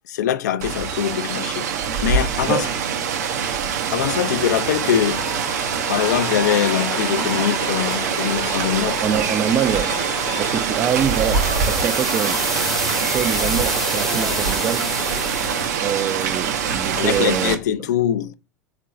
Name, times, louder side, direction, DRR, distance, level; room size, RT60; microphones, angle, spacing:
voice 1, 0.1-1.7 2.0-2.7 3.9-5.2 5.9-9.0 16.9-18.3, left 10 dB, 65° left, 0.4 m, -22 dB
Rain, 0.6-17.6, right 7 dB, 65° right, 0.6 m, -24 dB
Aircraft, 4.2-15.8, left 6 dB, 35° left, 0.9 m, -34 dB
voice 2, 9.0-12.5 12.9-14.9 15.8-17.6, right 9 dB, 25° right, 0.4 m, -25 dB
sound 1, 10.8-15.8, left 1 dB, 5° left, 0.7 m, -28 dB
3.7 x 2.5 x 4.1 m
figure-of-eight pair, 85°, 10 cm